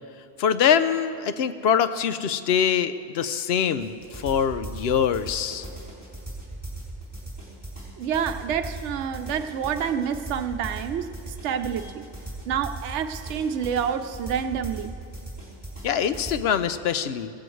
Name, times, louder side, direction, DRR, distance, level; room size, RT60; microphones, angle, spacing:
voice 1, 0.4-5.7 15.8-17.3, left 8 dB, 65° left, 12 dB, 0.8 m, -24 dB
sound 1, 3.8-16.3, right 1 dB, 5° right, 3.6 m, -38 dB
voice 2, 8.0-12.1 12.5-14.9, right 8 dB, 80° right, 8 dB, 0.9 m, -28 dB
16.5 x 15.5 x 3.2 m, 2.5 s
omnidirectional pair, 1.2 m